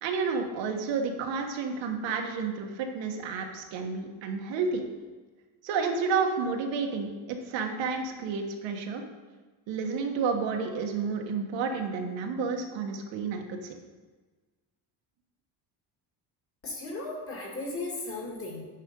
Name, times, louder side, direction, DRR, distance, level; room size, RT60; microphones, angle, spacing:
voice 1, 0.0-4.8 5.6-9.0 9.7-13.7, right 5 dB, 90° right, 3 dB, 1.4 m, -30 dB
voice 2, 16.6-18.6, left 2 dB, 30° left, -2 dB, 2.1 m, -36 dB
9.7 x 5.1 x 5.2 m, 1.3 s
cardioid pair, 180°, 43 cm